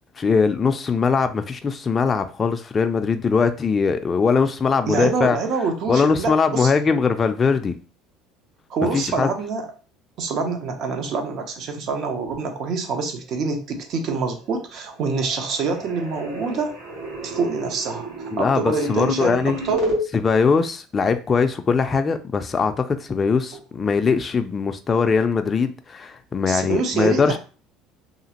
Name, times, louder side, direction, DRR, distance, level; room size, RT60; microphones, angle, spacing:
voice 1, 0.2-5.4 5.9-7.7 8.9-9.3 18.3-19.6 20.1-27.4, left 5 dB, 25° left, 0.3 m, -21 dB
voice 2, 4.9-6.7 8.7-9.7 10.2-16.7 17.2-19.9 26.5-27.4, right 4 dB, 55° right, 0.6 m, -26 dB
sound 1, 14.0-14.6 14.8-20.0, right 2 dB, 80° right, 1.2 m, -31 dB
2.9 x 2.4 x 2.8 m
supercardioid pair, 115°, 0 cm